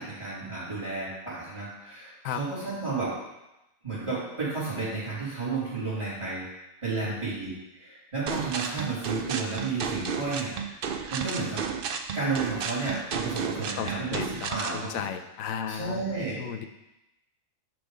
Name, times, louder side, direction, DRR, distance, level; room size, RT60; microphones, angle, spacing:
voice 1, 0.0-3.1 3.8-11.6 12.1-15.0 15.7-16.4, right 3 dB, 20° right, -13 dB, 3.1 m, -32 dB
sound 1, 8.3-14.8, right 6 dB, 60° right, 0.6 m, -32 dB
voice 2, 13.8-16.0 16.4-16.7, left 8 dB, 80° left, 8 dB, 1.0 m, -34 dB
10.5 x 3.5 x 4.9 m, 0.95 s
omnidirectional pair, 1.4 m